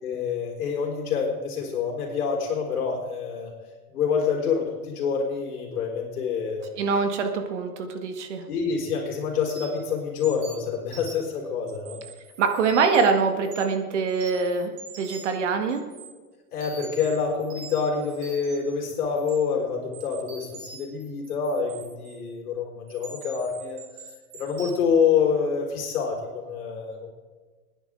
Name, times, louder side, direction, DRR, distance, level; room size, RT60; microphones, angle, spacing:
voice 1, 0.0-3.5 3.9-6.7 8.5-12.0 16.5-23.8 24.3-27.1, left 6 dB, 60° left, -3 dB, 4.4 m, -27 dB
voice 2, 6.8-8.4 12.4-14.7 15.0-15.8, right 5 dB, 50° right, 6 dB, 1.8 m, -24 dB
sound 1, 9.5-9.8 10.2-11.3 11.7-13.1 13.4-13.8 14.1-15.4 15.7-16.1 16.6-18.7 19.2-19.4 19.9-22.2 22.9-24.7, right 4 dB, 35° right, 2.9 m, -44 dB
26.5 x 10.5 x 3.8 m, 1.4 s
supercardioid pair, 175°, 46 cm